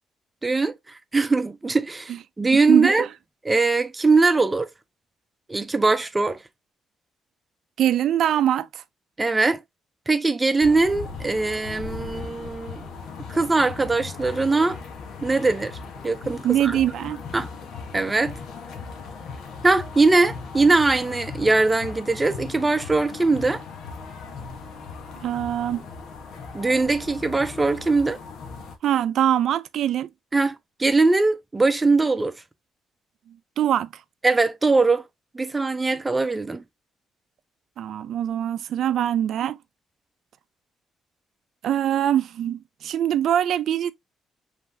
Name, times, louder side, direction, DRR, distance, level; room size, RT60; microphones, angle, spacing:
voice 1, 0.4-3.1 3.4-4.7 5.5-6.4 9.2-9.6 10.1-12.8 13.3-14.8 15.2-15.8 16.0-16.8 17.3-17.5 17.9-18.3 19.6-23.6 26.5-28.2 30.3-32.3 34.2-35.0 35.3-36.6, right 3 dB, 20° right, 0.7 m, -21 dB
voice 2, 2.7-3.1 7.8-8.8 16.4-17.2 25.2-25.8 28.8-30.1 33.3-33.9 37.8-39.6 41.6-43.9, right 11 dB, 70° right, 0.4 m, -23 dB
sound 1, 10.6-28.8, left 5 dB, 80° left, 1.1 m, -38 dB
5.4 x 3.3 x 2.6 m
cardioid pair, 90°, 0 cm